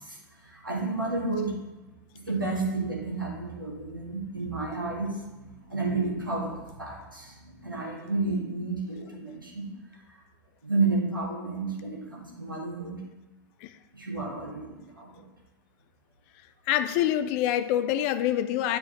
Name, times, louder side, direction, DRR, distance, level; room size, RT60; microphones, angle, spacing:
voice 1, 0.0-1.6 2.1-9.7 10.1-10.2 10.6-13.0 13.9-15.2, right 3 dB, 85° right, -3 dB, 1.6 m, -31 dB
voice 2, 16.7-18.8, left 11 dB, 45° left, 11 dB, 0.4 m, -26 dB
8.6 x 4.7 x 3.0 m, 1.1 s
figure-of-eight pair, 85°, 11 cm